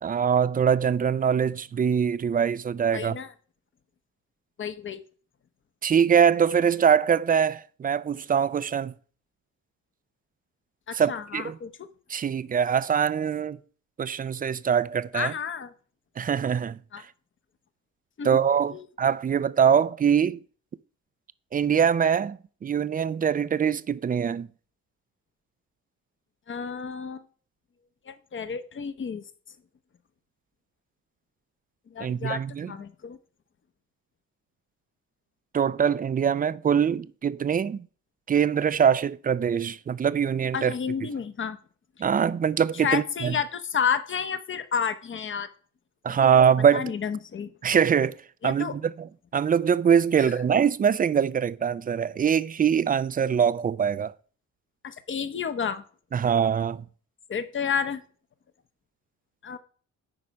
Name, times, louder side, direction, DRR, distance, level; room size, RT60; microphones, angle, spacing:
voice 1, 0.0-3.2 5.8-8.9 10.9-11.6 12.1-13.6 14.0-15.3 16.2-16.8 18.2-20.4 21.5-24.5 32.0-32.7 35.5-37.8 38.3-40.7 42.0-43.4 46.0-46.9 47.6-48.2 48.4-54.1 56.1-56.8, right 7 dB, 30° right, 0.4 m, -23 dB
voice 2, 2.9-3.3 4.6-5.0 10.9-11.9 15.1-15.7 16.9-17.0 18.2-18.4 18.7-18.9 26.5-27.2 28.1-29.2 31.9-33.2 40.5-41.6 42.8-45.5 46.1-46.3 46.7-47.5 48.4-48.7 54.8-55.8 57.3-58.0 59.4-59.6, left 7 dB, 40° left, 0.9 m, -31 dB
8.6 x 4.8 x 5.3 m
cardioid pair, 90°, 30 cm